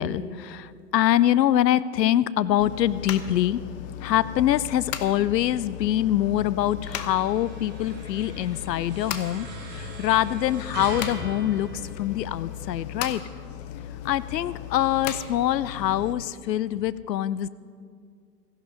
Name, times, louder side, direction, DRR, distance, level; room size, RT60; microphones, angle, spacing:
voice 1, 0.0-3.6 4.0-11.7 12.0-13.2 14.0-17.5, left 12 dB, 75° left, 18 dB, 0.7 m, -24 dB
sound 1, 2.6-16.1, left 11 dB, 30° left, 0.5 m, -37 dB
sound 2, 6.8-12.6, right 3 dB, 20° right, 3.3 m, -41 dB
15.0 x 11.0 x 5.1 m, 2.1 s
hypercardioid pair, 125°, 50 cm